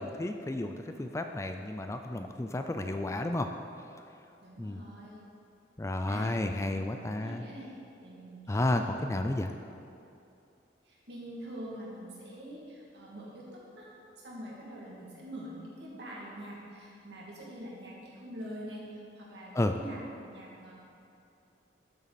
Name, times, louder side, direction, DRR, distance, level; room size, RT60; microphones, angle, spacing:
voice 1, 0.0-3.5 4.6-4.8 5.8-7.4 8.5-9.5 19.5-19.7, left 1 dB, 15° left, 6 dB, 0.3 m, -32 dB
voice 2, 4.4-5.2 6.1-6.3 6.6-7.7 8.0-9.0 10.8-13.9 14.2-20.7, right 1 dB, 75° right, -5 dB, 2.5 m, -45 dB
12.0 x 7.2 x 4.2 m, 2.6 s
head